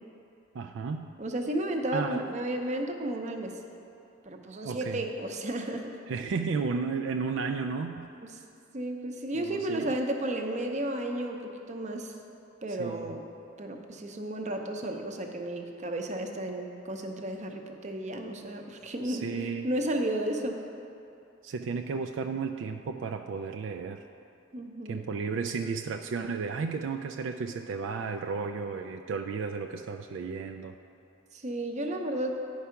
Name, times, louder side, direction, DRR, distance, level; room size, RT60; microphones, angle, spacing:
voice 1, 0.5-1.1 1.9-2.3 4.6-5.0 6.1-8.1 9.3-10.0 12.8-13.1 19.0-19.7 21.4-24.0 24.9-30.7, right 5 dB, 70° right, 5 dB, 0.3 m, -33 dB
voice 2, 1.2-3.6 4.2-5.9 8.7-12.1 12.6-13.2 13.6-20.6 24.5-25.0 31.3-32.4, right 1 dB, 35° right, 3 dB, 0.7 m, -33 dB
10.0 x 4.7 x 5.7 m, 2.6 s
head